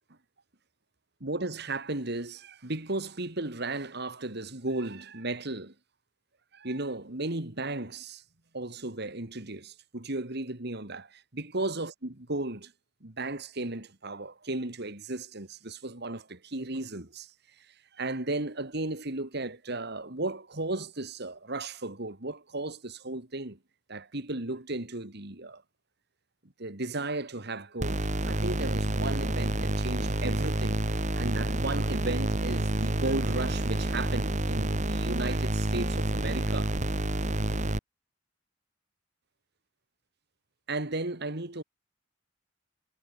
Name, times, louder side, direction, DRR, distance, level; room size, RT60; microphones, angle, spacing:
voice 1, 1.2-5.7 6.5-8.2 8.5-12.7 13.0-17.3 18.0-23.6 23.9-25.6 26.6-30.8 31.2-36.8 40.7-41.6, right 2 dB, 60° right, 2.7 m, -35 dB
sound 1, 27.8-37.8, right 1 dB, 40° right, 2.6 m, -29 dB
head